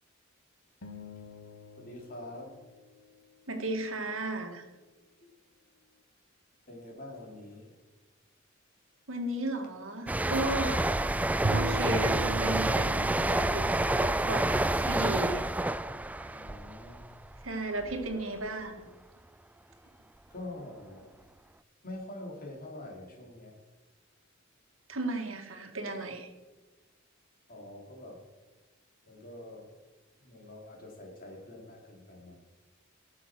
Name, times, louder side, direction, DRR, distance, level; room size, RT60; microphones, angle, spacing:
sound 1, 0.8-3.4, left 5 dB, 80° left, 1.3 m, -50 dB
voice 1, 1.8-2.6 6.7-7.8 16.3-17.1 20.3-21.1 21.8-23.6 27.5-28.2 29.1-29.7 30.2-32.4, left 1 dB, 45° left, 1 dB, 3.1 m, -45 dB
voice 2, 3.5-4.6 9.1-10.8 11.5-13.6 13.9-15.4 17.4-18.9 24.9-26.3, right 2 dB, 70° right, 4 dB, 2.0 m, -34 dB
sound 2, 10.1-17.5 17.8-18.1, right 1 dB, 5° right, 0.3 m, -29 dB
Bowed string instrument, 11.4-15.7, right 2 dB, 55° right, 0.8 m, -37 dB
17.5 x 7.3 x 6.2 m, 1.2 s
head